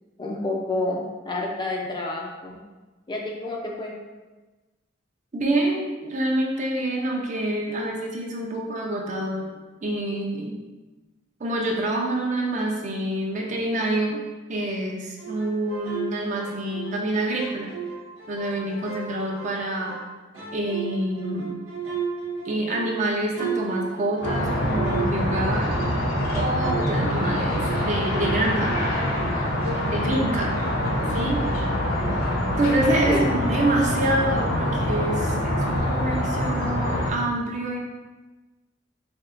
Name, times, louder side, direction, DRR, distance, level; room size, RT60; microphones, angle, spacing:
voice 1, 0.2-2.6 3.1-4.0 33.1-33.4, left 2 dB, 20° left, -1 dB, 0.4 m, -29 dB
voice 2, 5.3-9.5 9.8-10.6 11.4-14.2 14.5-17.7 18.3-20.0 20.5-21.6 22.4-25.7 26.3-28.8 29.8-30.6 31.1-31.5 32.6-37.8, right 1 dB, 40° right, 0 dB, 0.5 m, -26 dB
sound 1, 15.2-17.0 17.3-20.1 20.3-26.2 26.6-32.3 32.6-33.5, right 5 dB, 70° right, 0.9 m, -35 dB
sound 2, 24.2-37.1, left 1 dB, 85° left, 0.7 m, -25 dB
4.4 x 2.8 x 2.5 m, 1.2 s
head